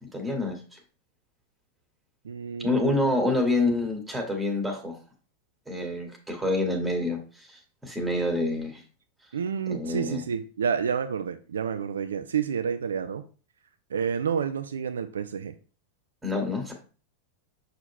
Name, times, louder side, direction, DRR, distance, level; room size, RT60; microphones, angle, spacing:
voice 1, 0.1-0.8 2.6-5.0 5.7-8.8 9.7-10.2 16.2-16.7, left 2 dB, 5° right, 1 dB, 2.1 m, -27 dB
voice 2, 2.2-3.0 9.3-13.2 13.9-15.5, right 7 dB, 65° right, 9 dB, 0.5 m, -29 dB
6.7 x 6.3 x 2.2 m, 0.37 s
figure-of-eight pair, 90°, 0 cm